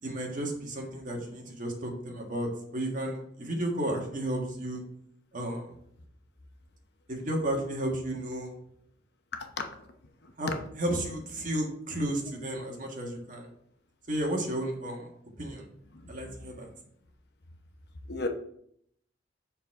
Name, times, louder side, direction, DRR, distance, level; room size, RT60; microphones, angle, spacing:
voice 1, 0.0-4.8 5.3-5.7 7.1-8.5 10.4-10.5 10.8-13.5 14.1-15.1 15.4-15.7 16.1-16.7, right 1 dB, 45° right, 1 dB, 1.7 m, -33 dB
voice 2, 15.9-16.7 18.1-18.3, left 3 dB, 60° left, 5 dB, 0.9 m, -36 dB
7.1 x 4.1 x 5.9 m, 0.70 s
head